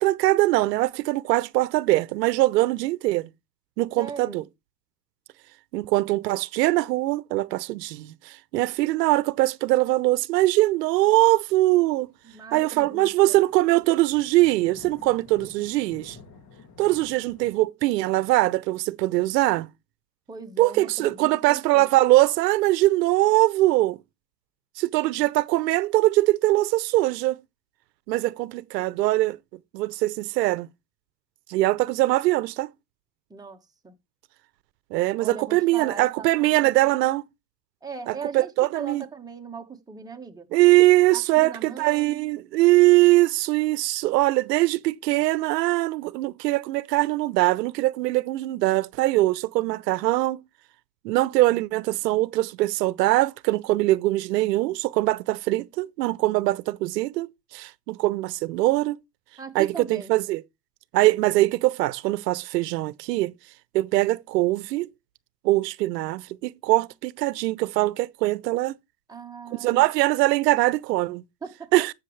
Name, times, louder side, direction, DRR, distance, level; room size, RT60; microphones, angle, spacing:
voice 1, 0.0-3.3 3.8-4.4 5.7-12.1 12.5-16.2 16.8-19.7 20.6-24.0 24.8-27.4 28.1-29.4 29.7-30.7 31.5-32.7 34.9-37.2 38.1-39.0 40.5-50.4 51.0-59.0 59.5-60.4 60.9-63.3 63.7-64.9 65.4-68.8 69.5-71.2 71.7-71.9, right 18 dB, 75° right, 0.8 m, -22 dB
voice 2, 4.0-4.4 12.2-13.4 20.3-21.9 33.3-33.9 35.2-37.1 37.8-40.5 41.1-42.3 59.4-60.1 69.1-69.8 71.4-71.7, right 5 dB, 10° right, 1.4 m, -39 dB
sound 1, 11.3-17.5, left 5 dB, 35° left, 2.1 m, -50 dB
13.5 x 6.5 x 3.2 m
supercardioid pair, 125°, 49 cm